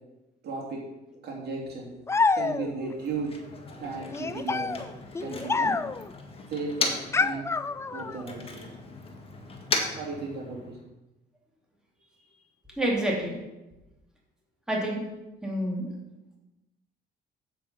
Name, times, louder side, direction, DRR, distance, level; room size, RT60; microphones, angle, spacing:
voice 1, 0.4-0.8 1.2-1.9 2.3-3.3 3.8-4.7 5.2-5.8 6.5-7.4 7.9-8.7 10.0-10.8, right 3 dB, 65° right, -2 dB, 2.7 m, -35 dB
sound 1, 2.1-2.9 4.1-6.1 7.1-8.2, left 4 dB, 15° left, 0.3 m, -27 dB
Motor vehicle (road), 2.8-7.3 7.6-10.9, left 3 dB, 30° left, 1.8 m, -36 dB
voice 2, 12.8-13.3 14.7-15.0 15.4-15.9, right 1 dB, 5° right, -3 dB, 2.9 m, -28 dB
7.9 x 7.1 x 5.6 m, 0.99 s
cardioid pair, 100°, 18 cm